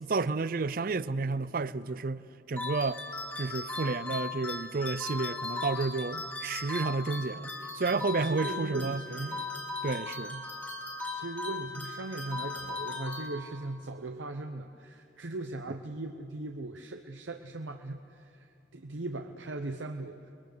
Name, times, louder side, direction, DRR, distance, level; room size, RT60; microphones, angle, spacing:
voice 1, 0.0-2.2 2.5-3.0 3.4-9.0 9.8-10.4, right 3 dB, 50° right, 0.5 m, -31 dB
sound 1, 2.6-13.8, left 3 dB, 10° left, 2.0 m, -38 dB
voice 2, 8.2-9.4 11.1-20.3, right 2 dB, 90° right, 0.9 m, -39 dB
29.5 x 21.5 x 6.7 m
head